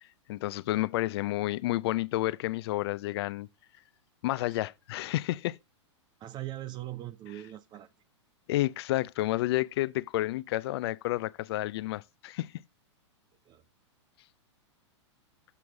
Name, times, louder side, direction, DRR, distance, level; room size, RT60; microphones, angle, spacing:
voice 1, 0.3-3.5 4.2-5.6 8.5-12.5, left 16 dB, 55° left, 0.4 m, -30 dB
voice 2, 4.4-4.7 6.2-7.9 13.5-13.6, right 14 dB, 30° right, 0.5 m, -41 dB
6.9 x 4.7 x 6.0 m
hypercardioid pair, 115°, 16 cm